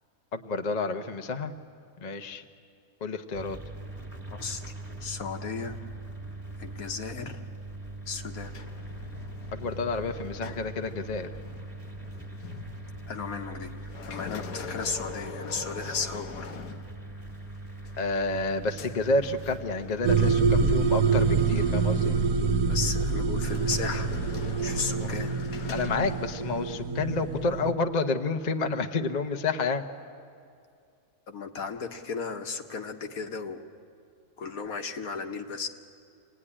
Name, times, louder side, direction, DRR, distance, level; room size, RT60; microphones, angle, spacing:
voice 1, 0.3-1.5 2.0-2.4 3.0-3.6 9.5-11.3 18.0-22.2 25.0-25.1 25.7-29.8, left 3 dB, 35° left, 7 dB, 0.7 m, -29 dB
sound 1, 3.3-22.3, right 2 dB, 20° right, 2.0 m, -42 dB
voice 2, 4.3-4.7 5.0-5.8 6.6-7.4 8.1-8.5 13.1-16.5 22.7-24.1 24.6-25.3 31.3-33.6 34.4-35.7, left 5 dB, 65° left, 6 dB, 1.6 m, -35 dB
sound 2, 8.4-17.4 17.8-20.0 20.3-20.6 21.3-22.2 23.4-26.7, left 6 dB, 90° left, 1.6 m, -44 dB
sound 3, 20.0-27.7, right 5 dB, 70° right, 1.5 m, -26 dB
26.0 x 18.0 x 9.9 m, 2.4 s
omnidirectional pair, 1.7 m